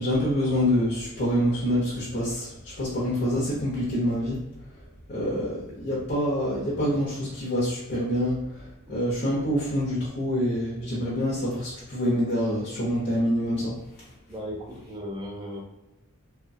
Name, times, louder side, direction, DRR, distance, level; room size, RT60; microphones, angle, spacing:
voice 1, 0.0-4.4 5.1-14.1, equal, 45° left, -5 dB, 0.6 m, -26 dB
voice 2, 14.3-15.6, equal, 20° right, -2 dB, 0.6 m, -36 dB
3.0 x 2.1 x 2.5 m, 0.96 s
head